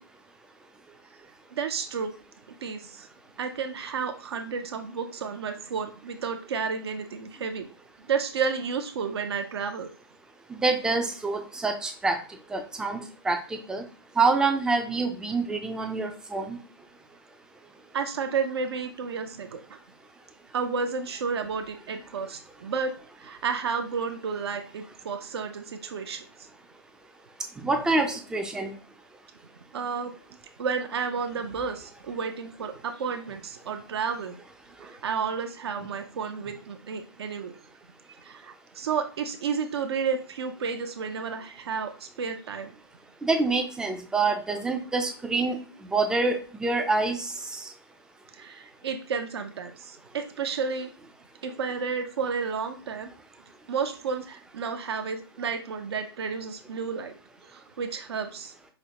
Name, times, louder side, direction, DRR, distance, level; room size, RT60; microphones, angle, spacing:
voice 1, 1.5-2.1 2.6-3.1 3.4-7.6 8.1-9.9 17.9-19.8 20.5-26.2 29.7-30.2 30.6-34.3 34.8-37.5 38.2-42.7 48.3-50.9 51.4-53.1 53.7-57.1 57.4-58.5, right 5 dB, 70° right, 6 dB, 0.5 m, -31 dB
voice 2, 10.6-12.2 12.5-13.0 13.3-13.8 14.2-16.6 27.6-28.7 43.2-45.6 45.9-47.2, right 3 dB, 5° right, 6 dB, 0.3 m, -26 dB
5.0 x 2.1 x 2.8 m, 0.39 s
hypercardioid pair, 135°, 14 cm